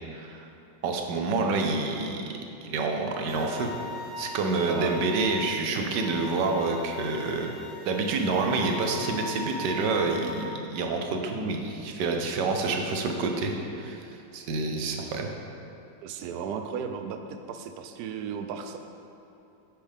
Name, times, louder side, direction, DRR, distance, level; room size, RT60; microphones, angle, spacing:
voice 1, 0.1-0.5 0.8-2.3 2.6-3.7 4.2-7.5 7.9-14.0 14.3-15.3, right 3 dB, 65° right, 3 dB, 1.3 m, -28 dB
sound 1, 3.3-10.5, left 2 dB, 15° right, 0.9 m, -40 dB
voice 2, 4.7-5.0 16.0-18.8, right 7 dB, 90° right, 6 dB, 0.8 m, -35 dB
10.0 x 6.3 x 3.6 m, 3.0 s
omnidirectional pair, 2.2 m